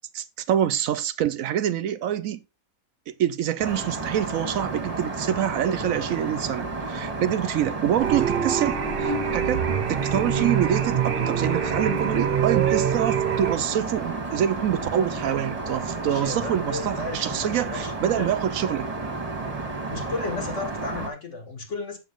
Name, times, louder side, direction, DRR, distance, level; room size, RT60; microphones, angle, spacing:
voice 1, 0.1-2.4 3.1-18.9, right 10 dB, 75° right, 1.0 m, -26 dB
Aircraft, 3.6-21.1, right 3 dB, 25° right, 1.5 m, -32 dB
sound 1, 8.0-13.6, right 8 dB, 45° right, 0.9 m, -25 dB
voice 2, 16.0-18.3 19.9-22.0, left 3 dB, 55° left, 2.5 m, -34 dB
7.6 x 7.1 x 3.8 m
omnidirectional pair, 1.5 m